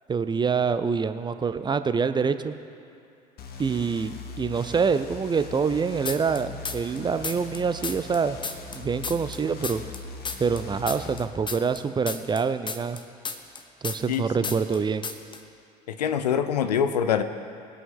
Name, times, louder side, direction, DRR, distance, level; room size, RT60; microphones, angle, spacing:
voice 1, 0.1-2.5 3.6-8.4 8.7-9.8 10.4-13.0 13.8-15.1, right 5 dB, 20° right, 11 dB, 0.5 m, -26 dB
sound 1, 3.4-11.2, left 4 dB, 50° left, 1.2 m, -41 dB
sound 2, 6.1-7.0 7.2-10.0 10.3-14.2 14.4-14.8 15.0-15.4, left 4 dB, 20° left, 0.9 m, -33 dB
voice 2, 14.1-14.5 15.9-17.2, left 8 dB, 75° left, 11 dB, 0.6 m, -25 dB
21.0 x 8.4 x 3.6 m, 2.5 s
figure-of-eight pair, 55°, 21 cm